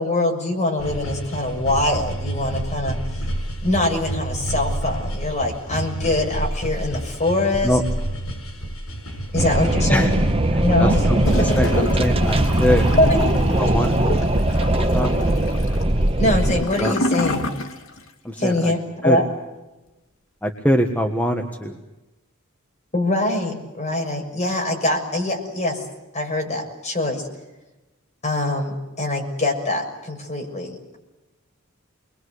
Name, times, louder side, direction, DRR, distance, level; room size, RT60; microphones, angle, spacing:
voice 1, 0.0-3.0 3.6-7.8 9.3-10.2 10.6-11.0 11.4-11.5 13.0-13.4 16.2-17.5 18.4-19.2 22.9-25.8 26.1-27.3 28.2-31.0, left 2 dB, 35° left, 2 dB, 6.6 m, -23 dB
sound 1, 0.8-13.0, right 1 dB, 90° left, 6.1 m, -29 dB
Wind, 9.4-16.6, right 1 dB, 25° right, 1.1 m, -20 dB
voice 2, 10.5-12.9 13.6-14.0 14.9-15.2 16.8-16.9 18.2-18.7 19.0-19.2 20.4-21.8, equal, 5° left, 4 dB, 1.5 m, -23 dB
Gurgling / Toilet flush, 11.2-18.1 18.4-18.5, left 1 dB, 70° left, 3.0 m, -29 dB
29.5 x 22.0 x 8.2 m, 1.1 s
head